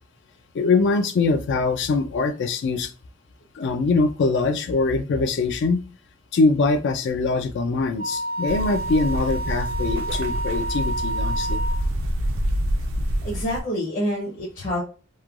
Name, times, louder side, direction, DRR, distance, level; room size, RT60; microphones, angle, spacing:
voice 1, 0.5-2.9 3.5-5.8 6.3-11.6, left 3 dB, 60° left, 9 dB, 0.3 m, -23 dB
Wind instrument woodwind instrument, 8.0-11.8, right 2 dB, 85° left, 1.3 m, -30 dB
sound 1, 8.5-13.6, equal, 65° right, 0.4 m, -26 dB
voice 2, 13.2-14.8, equal, 40° left, -5 dB, 0.7 m, -27 dB
3.1 x 2.2 x 2.3 m, 0.35 s
head